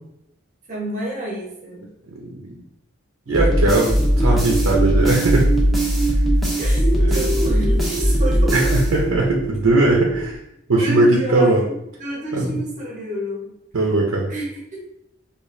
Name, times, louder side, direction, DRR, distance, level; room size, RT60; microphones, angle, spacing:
voice 1, 0.7-1.9 6.6-8.8 10.8-13.5 14.3-14.9, right 1 dB, 35° right, -3 dB, 1.0 m, -29 dB
voice 2, 2.2-2.5 3.3-5.5 7.0-7.3 8.5-10.4 10.7-11.6 12.3-12.5 13.7-14.3, right 2 dB, 90° right, -1 dB, 0.6 m, -19 dB
sound 1, 3.3-10.4, right 5 dB, 25° left, 0.9 m, -26 dB
sound 2, 3.3-9.4, equal, ahead, 0.6 m, -19 dB
4.8 x 2.4 x 2.6 m, 0.81 s
head